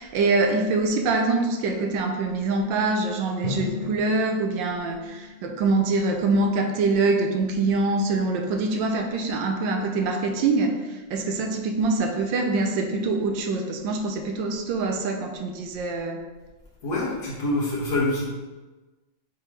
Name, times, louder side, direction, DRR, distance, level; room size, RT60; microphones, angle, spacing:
voice 1, 0.0-16.2, right 3 dB, 80° right, 4 dB, 1.4 m, -24 dB
Drum, 3.4-6.2, left 5 dB, 35° left, 1.0 m, -36 dB
voice 2, 16.8-18.2, left 2 dB, 60° left, -5 dB, 2.1 m, -25 dB
8.5 x 3.5 x 3.2 m, 1.2 s
omnidirectional pair, 2.0 m